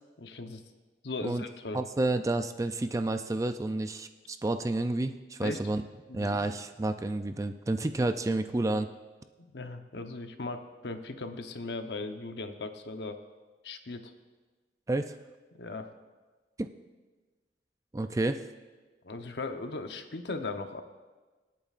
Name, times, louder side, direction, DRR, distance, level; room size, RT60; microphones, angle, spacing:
voice 1, 0.2-0.6 1.0-1.8 5.4-5.6 6.1-6.4 9.4-13.2 13.6-14.1 15.5-15.9 19.0-20.8, left 3 dB, 70° left, 6 dB, 0.9 m, -38 dB
voice 2, 1.7-5.8 6.1-8.9 14.9-15.2 16.6-16.7 17.9-18.4, right 2 dB, 20° right, 9 dB, 0.4 m, -30 dB
26.0 x 8.8 x 2.5 m, 1.3 s
head